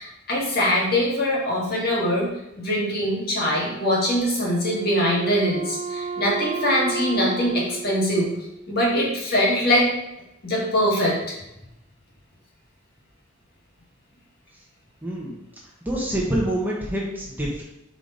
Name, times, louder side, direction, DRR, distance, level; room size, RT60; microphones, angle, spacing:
voice 1, 0.0-2.3 2.6-8.3 8.7-9.9 10.4-11.4, equal, 45° left, -3 dB, 1.9 m, -22 dB
Wind instrument woodwind instrument, 4.4-8.9, right 4 dB, 30° right, 0.4 m, -33 dB
voice 2, 15.0-15.4 15.8-17.6, right 1 dB, 10° right, -4 dB, 1.0 m, -26 dB
5.5 x 5.0 x 4.0 m, 0.87 s
head